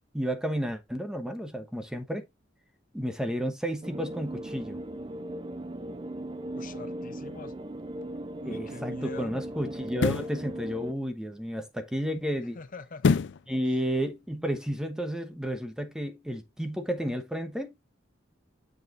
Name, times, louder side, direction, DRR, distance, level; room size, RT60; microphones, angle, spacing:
voice 1, 0.1-2.2 2.9-4.8 8.4-12.6 13.5-17.7, equal, 5° right, 1.0 m, -32 dB
sound 1, 3.8-10.9, right 1 dB, 25° right, 0.5 m, -38 dB
voice 2, 6.5-7.5 8.4-9.3 12.5-13.2, left 4 dB, 45° left, 0.8 m, -44 dB
sound 2, 8.0-8.2 9.9-10.4 13.0-13.5 13.9-14.0, left 5 dB, 65° left, 0.4 m, -25 dB
7.2 x 6.9 x 2.5 m
head